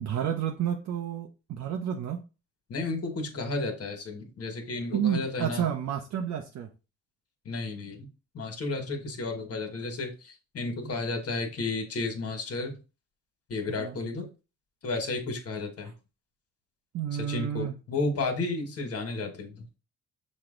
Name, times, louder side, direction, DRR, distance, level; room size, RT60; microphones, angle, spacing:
voice 1, 0.0-2.2 4.9-6.7 13.7-14.0 16.9-17.7, right 9 dB, 65° right, 2 dB, 0.7 m, -30 dB
voice 2, 2.7-5.7 7.4-8.1 8.3-12.8 13.5-14.3 14.8-15.9 17.1-19.8, left 3 dB, 50° left, 4 dB, 1.4 m, -32 dB
6.2 x 2.2 x 3.7 m, 0.31 s
cardioid pair, 90°, 30 cm